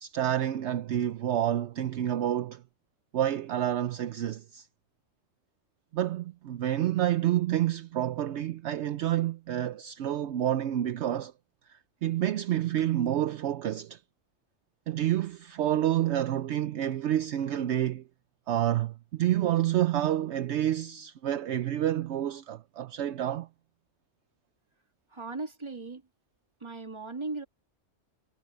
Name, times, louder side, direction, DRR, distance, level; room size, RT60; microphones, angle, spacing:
voice 1, 0.0-2.6 3.1-4.7 5.9-11.3 11.7-14.0 14.9-18.0 18.5-23.5, right 12 dB, 70° right, 0.9 m, -28 dB
voice 2, 25.1-26.0 26.6-27.5, right 3 dB, 25° right, 1.8 m, -37 dB
omnidirectional pair, 1.3 m